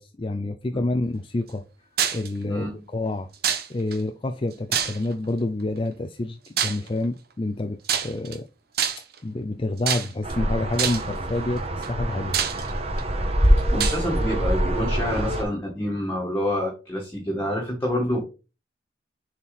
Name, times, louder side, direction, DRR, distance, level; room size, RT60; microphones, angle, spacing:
voice 1, 0.0-1.6 2.1-2.7 2.9-3.3 3.7-8.5 9.2-12.4, left 2 dB, 30° left, 0.5 m, -28 dB
sound 1, 2.0-2.3 3.4-4.0 4.7-5.2 6.6-6.9 7.8-8.4 8.8-9.2 9.9-10.3 10.8-11.1 11.8-11.9 12.3-13.0 13.8-14.0, right 8 dB, 55° right, 1.2 m, -25 dB
sound 2, 10.2-15.4, equal, 35° right, 1.3 m, -24 dB
voice 2, 13.7-18.2, left 1 dB, 15° left, 1.9 m, -27 dB
6.9 x 4.4 x 4.2 m
head